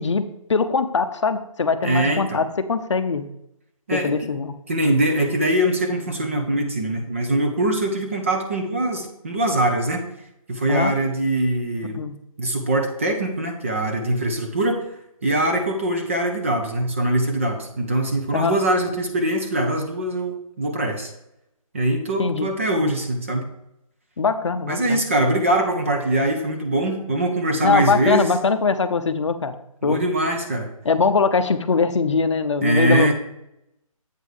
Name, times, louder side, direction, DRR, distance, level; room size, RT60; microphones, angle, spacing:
voice 1, 0.0-3.2 3.9-4.6 10.7-10.9 11.9-12.2 18.3-18.6 22.2-22.5 24.2-25.0 27.6-29.6 29.8-30.0 30.8-33.1, left 4 dB, 55° left, 10 dB, 0.6 m, -22 dB
voice 2, 1.8-2.4 3.9-4.1 4.7-10.1 10.5-12.0 12.4-14.9 15.2-21.1 21.7-23.4 24.7-28.3 29.8-30.7 32.6-33.1, right 1 dB, 20° right, 3 dB, 0.6 m, -22 dB
8.1 x 3.6 x 6.4 m, 0.82 s
hypercardioid pair, 170°, 18 cm